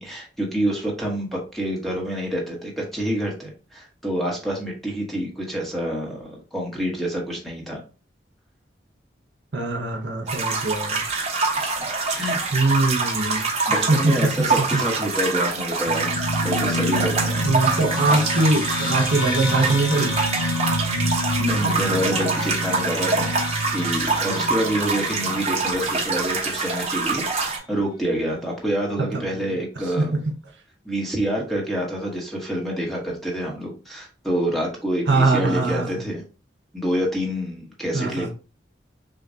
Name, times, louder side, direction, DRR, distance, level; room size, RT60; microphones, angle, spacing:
voice 1, 0.0-7.8 11.8-12.4 13.7-16.1 16.4-17.7 18.1-18.2 21.0-21.1 21.4-23.3 23.7-30.2 30.8-36.2 36.7-38.3, equal, ahead, 1.0 m, -27 dB
voice 2, 9.5-11.0 12.5-13.5 13.9-14.3 14.7-14.8 17.4-20.1 29.1-29.6 30.0-30.2 35.1-36.0 37.9-38.3, right 2 dB, 70° right, 0.8 m, -22 dB
sound 1, 10.3-27.6, right 4 dB, 35° right, 0.8 m, -25 dB
sound 2, 15.9-26.6, left 1 dB, 55° left, 1.4 m, -28 dB
6.2 x 2.2 x 2.6 m
head